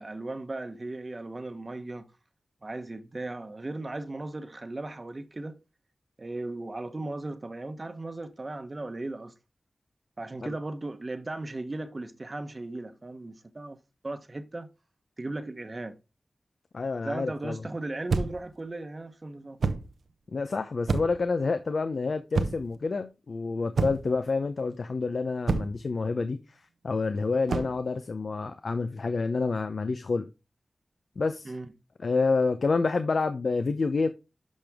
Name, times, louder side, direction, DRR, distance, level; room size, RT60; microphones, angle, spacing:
voice 1, 0.0-2.1 2.6-5.6 6.2-9.3 10.2-13.8 14.0-14.7 15.2-16.0 17.0-19.6 31.4-31.7, right 2 dB, 40° right, 1.0 m, -37 dB
voice 2, 16.7-17.6 20.3-26.6 26.8-30.3 31.2-31.5 32.0-34.1, left 4 dB, 70° left, 0.7 m, -28 dB
sound 1, 18.1-18.5 19.6-19.9 20.9-21.3 22.3-22.8 23.7-24.2 25.5-25.8 27.5-27.8, right 4 dB, 90° right, 0.8 m, -28 dB
11.5 x 5.2 x 3.5 m
cardioid pair, 50°, 0 cm